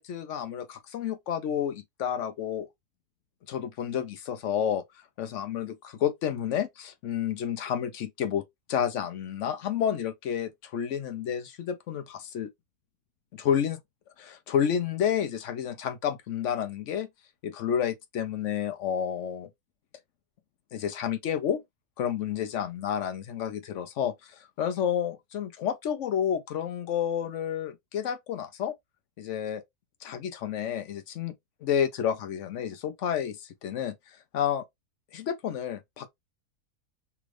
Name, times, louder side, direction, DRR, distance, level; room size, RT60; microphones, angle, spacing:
voice 1, 0.0-2.7 3.5-4.8 5.2-8.4 8.7-12.5 13.3-13.8 14.2-17.1 17.4-19.5 20.7-21.6 22.0-28.7 29.2-29.6 30.0-31.3 31.6-33.9 34.3-34.6 35.1-36.1, left 9 dB, 65° left, 0.8 m, -30 dB
3.4 x 2.4 x 3.1 m
omnidirectional pair, 1.7 m